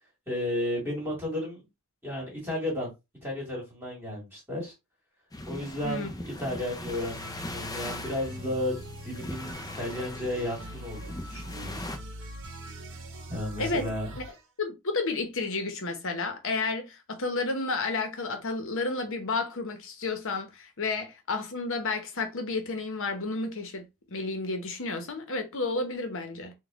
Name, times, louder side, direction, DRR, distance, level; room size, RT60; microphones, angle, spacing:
voice 1, 0.3-1.6 2.0-2.9 3.2-4.7 5.5-11.8 13.3-14.1, left 1 dB, 10° right, 1.8 m, -33 dB
sound 1, 5.3-12.0, left 1 dB, 15° left, 0.5 m, -40 dB
sound 2, 6.9-14.4, equal, 60° right, 0.8 m, -42 dB
voice 2, 13.6-13.9 14.2-14.3 14.6-26.5, left 3 dB, 60° left, 1.0 m, -31 dB
4.0 x 2.3 x 3.6 m
head